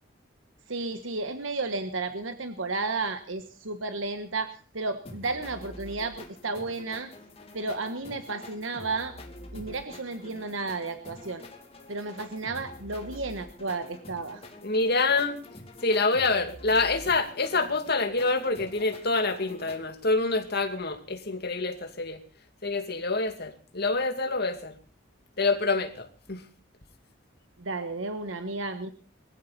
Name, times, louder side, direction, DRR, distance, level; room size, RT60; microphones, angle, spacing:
voice 1, 0.7-7.1 7.5-9.1 9.5-11.4 11.9-14.4 27.6-28.9, right 3 dB, 80° right, 8 dB, 1.4 m, -33 dB
sound 1, 5.1-19.8, left 1 dB, 30° left, 2.7 m, -46 dB
voice 2, 14.6-15.4 15.8-22.2 22.6-24.7 25.4-26.4, left 3 dB, 55° left, 6 dB, 2.5 m, -26 dB
21.5 x 15.0 x 4.2 m, 0.39 s
head